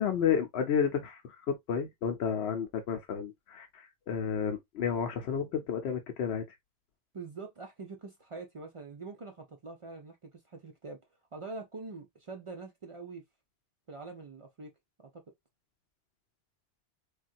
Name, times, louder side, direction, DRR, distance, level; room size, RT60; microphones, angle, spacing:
voice 1, 0.0-6.4, left 7 dB, 80° left, 0.8 m, -31 dB
voice 2, 7.1-11.0 11.3-13.2 13.9-14.7 15.1-15.2, right 3 dB, 50° right, 0.4 m, -44 dB
3.5 x 2.3 x 2.5 m
omnidirectional pair, 1.1 m